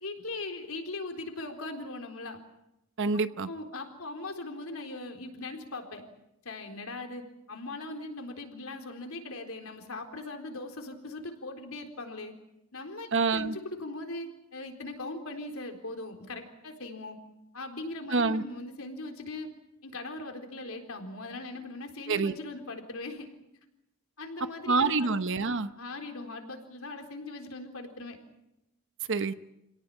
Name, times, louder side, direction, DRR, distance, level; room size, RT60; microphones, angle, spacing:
voice 1, 0.0-2.4 3.1-6.0 6.4-12.3 12.7-17.2 17.5-19.5 19.8-23.3 24.2-25.2 25.7-28.2, left 2 dB, 75° left, 4 dB, 4.0 m, -40 dB
voice 2, 3.0-3.5 13.1-13.6 18.1-18.4 22.1-22.3 24.7-25.7 29.1-29.3, right 4 dB, 60° right, 11 dB, 0.9 m, -26 dB
27.5 x 17.5 x 9.1 m, 0.89 s
head